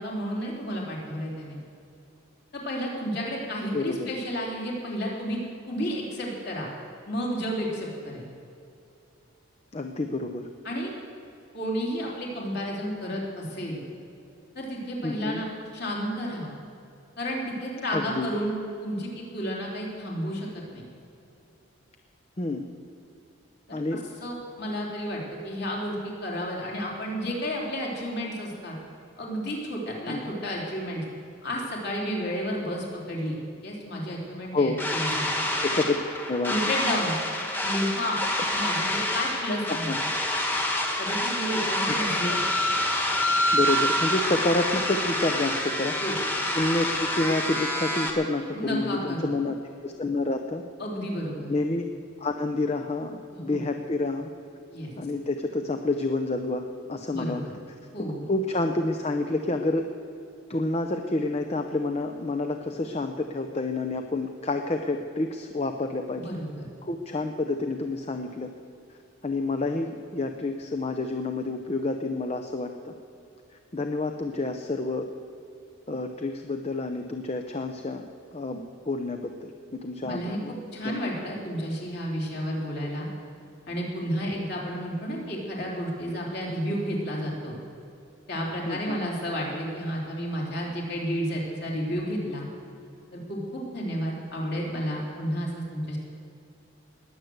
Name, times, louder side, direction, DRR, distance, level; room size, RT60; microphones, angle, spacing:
voice 1, 0.0-1.6 2.5-5.4 5.7-6.7 7.1-8.3 10.6-10.9 11.5-13.8 14.6-15.5 15.7-16.5 17.2-20.8 23.7-28.7 29.2-31.0 31.4-33.4 33.6-35.4 36.5-37.2 37.6-38.2 38.5-39.9 41.0-42.4 46.0-46.2 48.5-49.3 50.8-51.5 53.3-53.7 54.7-54.9 57.1-57.5 57.9-58.2 66.1-66.7 80.0-83.1 83.7-87.5 88.3-92.5 93.1-96.0, equal, 50° left, -3 dB, 3.6 m, -31 dB
voice 2, 3.7-4.1 9.7-10.5 15.0-15.4 17.9-18.3 22.4-22.6 23.7-24.0 30.1-30.2 34.5-34.8 35.6-36.0 36.3-36.6 39.9-40.0 41.9-42.3 43.5-46.0 46.5-49.5 49.8-50.6 51.5-51.9 52.2-54.3 55.0-57.4 58.3-59.9 60.5-66.3 66.8-68.5 68.9-69.0 69.2-72.9 73.7-75.1 75.9-78.1 78.3-80.6 80.8-81.1 88.7-89.0, left 2 dB, 30° left, 5 dB, 0.6 m, -29 dB
sound 1, 34.8-48.1, left 1 dB, 10° left, 1.5 m, -27 dB
20.5 x 7.9 x 8.0 m, 2.6 s
head